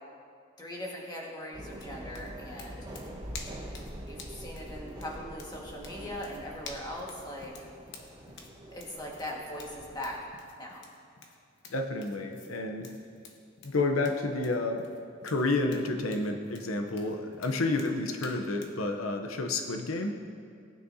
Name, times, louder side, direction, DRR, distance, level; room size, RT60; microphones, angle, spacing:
voice 1, 0.6-2.9 4.0-7.5 8.7-10.2 10.6-10.8, left 1 dB, 20° left, -3 dB, 1.6 m, -40 dB
sound 1, 1.5-10.2, right 1 dB, 20° right, 1.3 m, -44 dB
sound 2, 1.7-18.8, left 4 dB, 60° left, 1.1 m, -50 dB
voice 2, 11.7-12.9 13.6-14.9 15.2-20.2, left 2 dB, 90° left, 5 dB, 0.8 m, -30 dB
19.0 x 9.5 x 2.8 m, 2.3 s
head